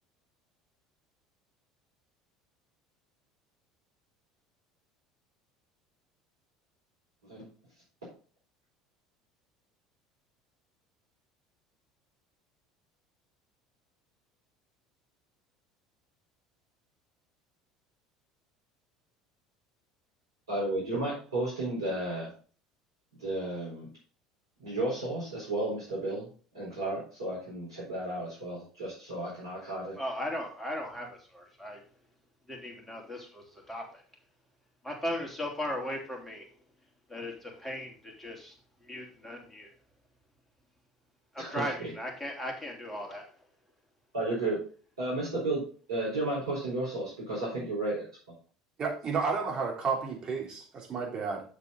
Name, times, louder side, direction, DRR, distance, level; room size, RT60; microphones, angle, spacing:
voice 1, 20.5-22.3 23.2-23.9 24.6-26.3 26.5-30.0 41.4-41.9 44.1-44.6 45.0-45.6 45.9-48.1, right 2 dB, 85° right, -8 dB, 4.3 m, -33 dB
voice 2, 30.0-31.8 32.5-34.0 34.8-36.5 37.1-39.7 41.3-43.3, left 1 dB, 10° left, 1 dB, 3.1 m, -37 dB
voice 3, 48.8-51.4, right 5 dB, 40° right, 0 dB, 3.2 m, -31 dB
7.6 x 6.8 x 3.9 m, 0.41 s
hypercardioid pair, 70°, 2 cm